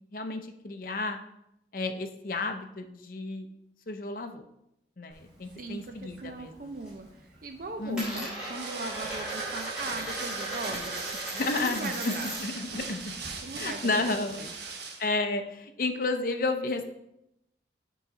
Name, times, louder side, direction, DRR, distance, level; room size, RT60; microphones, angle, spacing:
voice 1, 0.1-1.2 1.7-3.5 3.9-4.4 5.0-6.5 7.8-8.3 11.3-12.1 12.4-13.1 13.6-14.4 15.0-16.8, left 3 dB, 50° left, 6 dB, 0.6 m, -31 dB
Coin (dropping), 5.1-6.3 6.6-7.1 7.3-12.6 12.9-14.6, right 1 dB, 5° right, 2.7 m, -38 dB
voice 2, 5.5-12.3 13.4-14.1 14.3-14.5, right 3 dB, 50° right, 5 dB, 0.5 m, -40 dB
sound 1, 8.4-15.1, right 4 dB, 65° right, 0.9 m, -40 dB
7.3 x 3.9 x 5.2 m, 0.83 s
head